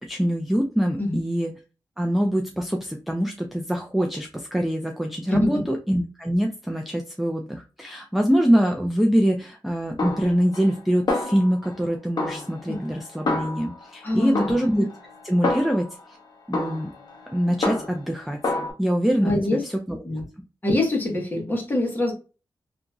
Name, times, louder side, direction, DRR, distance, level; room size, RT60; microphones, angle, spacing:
voice 1, 0.1-1.5 2.0-14.9 15.2-16.2 16.5-16.9 17.3-18.4 18.8-20.0, equal, ahead, 2 dB, 0.4 m, -24 dB
voice 2, 5.3-5.6 12.7-12.8 14.0-14.5 19.2-19.6 20.0-20.2 20.6-22.1, left 1 dB, 25° left, -1 dB, 1.1 m, -24 dB
Snare drum, 10.0-10.8 11.1-11.8 12.2-13.9 14.3-16.0 16.5-18.1 18.4-18.7, left 2 dB, 55° left, 0.7 m, -28 dB
2.8 x 2.5 x 2.3 m, 0.33 s
wide cardioid pair, 115°, 8 cm